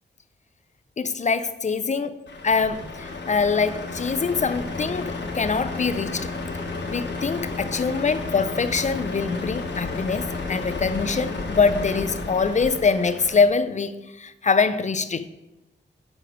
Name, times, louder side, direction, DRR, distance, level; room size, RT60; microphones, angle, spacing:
voice 1, 1.0-2.2 2.4-6.3 6.9-15.3, left 5 dB, 40° left, 0.4 m, -24 dB
Truck, 2.3-13.5, left 3 dB, 65° left, 1.1 m, -32 dB
7.9 x 4.8 x 4.8 m
cardioid pair, 75°, 20 cm